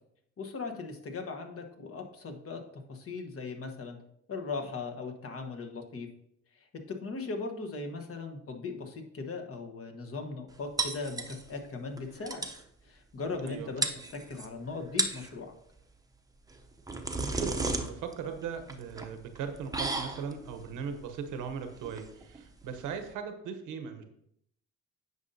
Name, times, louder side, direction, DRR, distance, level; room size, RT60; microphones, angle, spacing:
voice 1, 0.4-4.0 4.3-6.1 6.5-12.4 12.8-13.9 14.1-15.5, left 4 dB, 50° left, 4 dB, 1.2 m, -38 dB
sound 1, 10.8-11.7 12.0-12.1 12.3-12.6 13.5-13.6 13.8-14.5 14.8-15.3 16.5-23.1, right 3 dB, 10° right, 0.7 m, -34 dB
voice 2, 17.2-24.0, right 6 dB, 90° right, 8 dB, 0.9 m, -39 dB
9.5 x 5.3 x 2.7 m, 0.73 s
cardioid pair, 90°, 30 cm